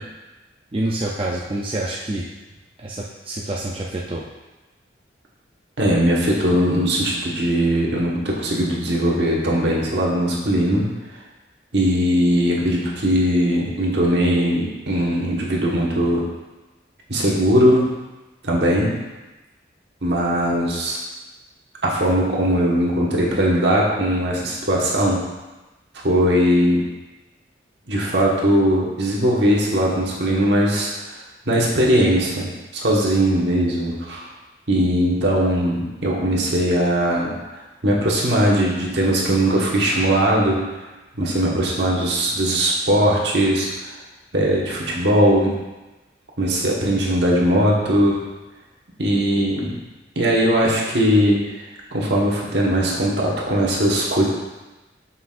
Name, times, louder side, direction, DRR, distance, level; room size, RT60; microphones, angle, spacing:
voice 1, 0.7-2.2 2.8-4.3, right 1 dB, 30° right, -4 dB, 0.5 m, -27 dB
voice 2, 5.8-10.9 11.7-16.2 17.1-17.9 18.4-18.9 20.0-21.0 21.8-25.2 26.0-26.8 27.9-31.2 31.5-34.2 34.7-40.6 41.1-43.9 44.3-45.6 46.4-48.2 49.0-49.8 50.1-51.6 51.9-54.3, equal, 65° right, -4 dB, 1.4 m, -19 dB
8.0 x 5.7 x 2.5 m, 1.1 s
head